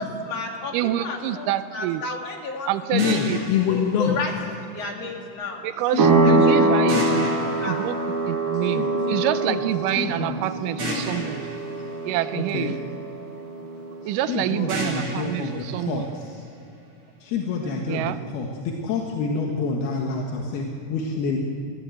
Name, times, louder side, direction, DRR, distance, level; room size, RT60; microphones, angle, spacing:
voice 1, 0.0-2.7 3.0-3.4 3.7-5.6 6.2-7.3 7.6-7.8, left 3 dB, 45° left, 1 dB, 3.2 m, -33 dB
voice 2, 0.7-2.1 2.7-3.5 5.6-7.2 7.6-8.0 8.3-11.5 12.1-12.8 14.1-16.2 17.6-18.2, right 13 dB, 85° right, 11 dB, 1.9 m, -27 dB
voice 3, 2.9-4.1 5.9-6.1 6.6-7.2 8.8-8.9 9.5-9.6 10.0-10.3 12.3-12.7 14.3-16.0 17.2-18.0 18.3-20.7 20.9-21.4, left 6 dB, 80° left, 0 dB, 3.4 m, -27 dB
sound 1, 3.0-5.0 6.9-8.9 10.8-13.0 14.7-16.7, right 1 dB, 40° right, 8.0 m, -34 dB
sound 2, 6.0-14.3, right 2 dB, 65° right, 4.0 m, -24 dB
22.0 x 15.5 x 7.9 m, 2.5 s
omnidirectional pair, 4.5 m